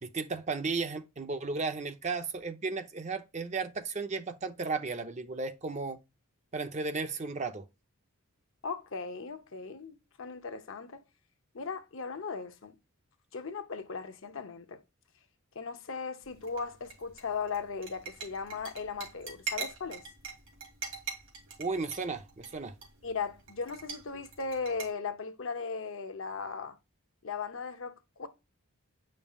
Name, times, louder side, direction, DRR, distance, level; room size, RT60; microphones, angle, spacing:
voice 1, 0.0-6.0 6.5-7.6 21.6-22.7, right 4 dB, 30° right, 0.6 m, -34 dB
voice 2, 8.6-11.0 11.5-12.8 13.3-14.8 15.5-20.0 23.0-26.8 27.2-28.3, left 5 dB, 60° left, 0.7 m, -37 dB
sound 1, 16.2-24.9, right 6 dB, 55° right, 2.6 m, -44 dB
8.3 x 5.4 x 2.3 m
head